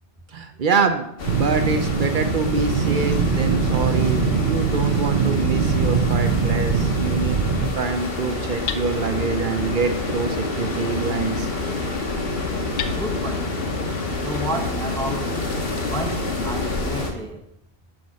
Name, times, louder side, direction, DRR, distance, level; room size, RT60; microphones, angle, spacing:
voice 1, 0.3-1.0 1.3-7.4 7.7-11.5, right 5 dB, 55° right, 0.7 m, -25 dB
sound 1, 1.2-17.1, left 2 dB, 65° left, 1.4 m, -28 dB
sound 2, 1.2-7.7, right 5 dB, 75° right, 1.0 m, -22 dB
Hammer, 4.6-14.3, left 8 dB, 85° left, 0.9 m, -39 dB
voice 2, 12.9-13.5 14.2-15.4 15.9-17.5, equal, 5° left, 0.4 m, -31 dB
6.2 x 5.2 x 6.0 m
omnidirectional pair, 1.1 m